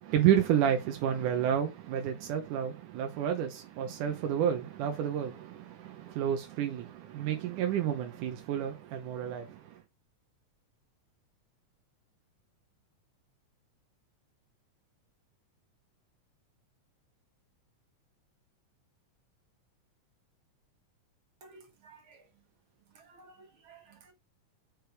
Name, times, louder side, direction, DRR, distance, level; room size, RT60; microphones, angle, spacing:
voice 1, 0.0-9.8, right 9 dB, 85° right, 2.5 m, -30 dB
voice 2, 21.4-22.2 23.0-24.1, right 3 dB, 50° right, 1.8 m, -55 dB
6.6 x 4.7 x 4.6 m
omnidirectional pair, 3.5 m